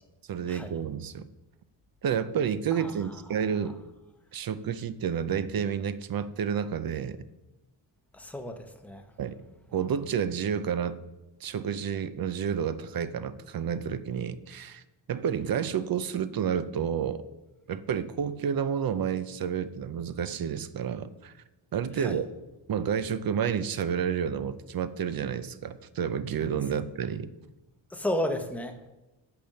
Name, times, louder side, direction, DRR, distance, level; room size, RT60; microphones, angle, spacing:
voice 1, 0.3-1.3 2.0-3.8 4.3-7.2 9.2-9.4 9.7-11.0 11.4-14.8 15.1-17.2 17.7-21.3 21.7-22.3 22.7-27.3, right 7 dB, 50° right, 13 dB, 0.7 m, -30 dB
voice 2, 8.1-9.0 22.0-22.2 27.9-28.9, left 1 dB, 5° left, 5 dB, 0.9 m, -33 dB
8.5 x 6.9 x 6.5 m, 1.0 s
cardioid pair, 100°, 47 cm